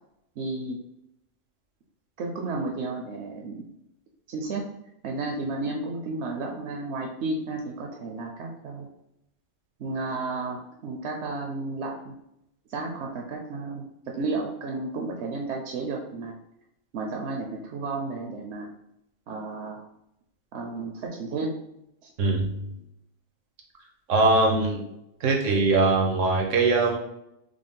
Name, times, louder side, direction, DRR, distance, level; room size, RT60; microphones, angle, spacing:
voice 1, 0.4-0.8 2.2-3.7 4.3-4.7 5.0-8.9 9.8-12.1 12.7-16.3 16.9-18.7 19.3-19.8 20.5-21.5 22.0-22.1, right 3 dB, 70° right, 0 dB, 0.8 m, -32 dB
voice 2, 22.2-22.7 24.1-24.8 25.2-27.0, right 3 dB, 90° right, 1 dB, 1.2 m, -22 dB
5.0 x 2.0 x 3.6 m, 0.81 s
omnidirectional pair, 1.3 m